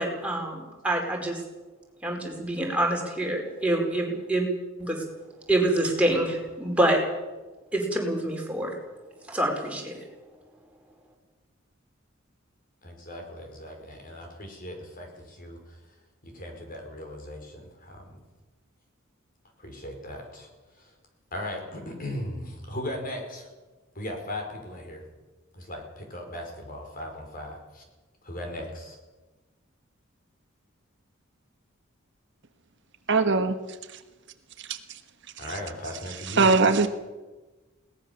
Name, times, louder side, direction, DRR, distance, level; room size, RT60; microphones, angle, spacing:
voice 1, 0.0-1.4 2.0-4.5 4.8-5.0 5.5-7.0 7.7-8.7 9.3-10.0, right 1 dB, 5° right, -1 dB, 4.7 m, -26 dB
voice 2, 12.8-15.8 16.2-18.2 19.6-20.5 20.8-20.9 21.3-23.5 23.9-25.0 25.5-27.8 28.2-29.0 35.4-36.5, left 1 dB, 45° left, 3 dB, 5.0 m, -38 dB
voice 3, 33.1-33.5 34.7-34.8 36.4-36.9, right 4 dB, 60° right, 8 dB, 1.4 m, -20 dB
21.5 x 18.5 x 7.1 m, 1.2 s
head